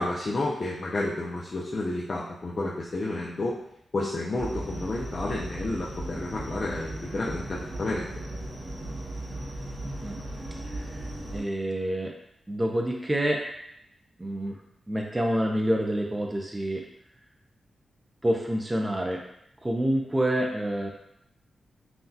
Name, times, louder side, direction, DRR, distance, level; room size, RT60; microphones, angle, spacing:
voice 1, 0.0-3.6 3.9-8.1, left 2 dB, 40° left, -4 dB, 0.5 m, -30 dB
sound 1, 4.4-11.4, right 1 dB, 55° right, 1.0 m, -37 dB
voice 2, 11.3-12.1 12.5-13.4 14.2-14.6 14.9-16.8 18.2-19.2 19.6-20.9, right 1 dB, 15° right, 0 dB, 0.4 m, -27 dB
5.7 x 2.3 x 2.7 m, 0.76 s
wide cardioid pair, 140°, 0 cm